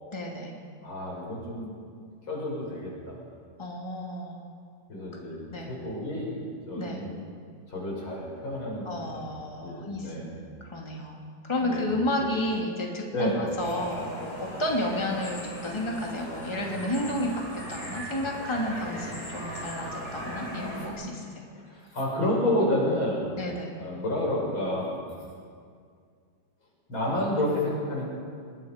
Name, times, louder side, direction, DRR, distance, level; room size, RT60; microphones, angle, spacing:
voice 1, 0.1-0.6 3.6-4.4 5.5-5.7 6.7-7.0 8.8-10.2 10.6-17.4 17.7-21.4 23.4-23.7, left 1 dB, 15° left, -1 dB, 2.6 m, -31 dB
voice 2, 0.8-1.7 2.3-3.2 4.9-5.4 5.7-7.1 7.7-9.2 9.6-10.3 11.6-12.0 13.1-13.4 21.6-23.3 23.8-25.0 26.9-28.1, left 1 dB, 85° left, -3 dB, 6.7 m, -30 dB
sound 1, 13.6-20.9, equal, 50° left, 5.9 m, -38 dB
25.5 x 21.0 x 5.2 m, 2.2 s
omnidirectional pair, 2.2 m